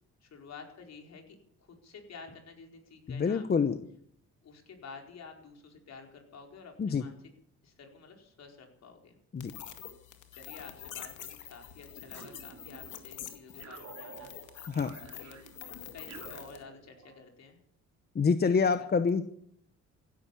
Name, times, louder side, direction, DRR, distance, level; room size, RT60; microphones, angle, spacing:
voice 1, 0.2-3.4 4.4-7.2 7.6-9.2 10.3-14.4 15.0-15.4 15.7-17.6 18.4-18.9, left 5 dB, 60° left, 3 dB, 4.7 m, -51 dB
voice 2, 3.1-3.8 6.8-7.0 9.3-9.5 14.7-14.9 18.1-19.4, left 5 dB, 30° left, 11 dB, 1.0 m, -27 dB
sound 1, 9.4-16.6, left 10 dB, 80° left, 2.2 m, -46 dB
sound 2, 12.1-13.1 13.6-17.2, right 7 dB, 60° right, 2.8 m, -51 dB
16.0 x 12.5 x 7.0 m, 0.65 s
cardioid pair, 90°, 30 cm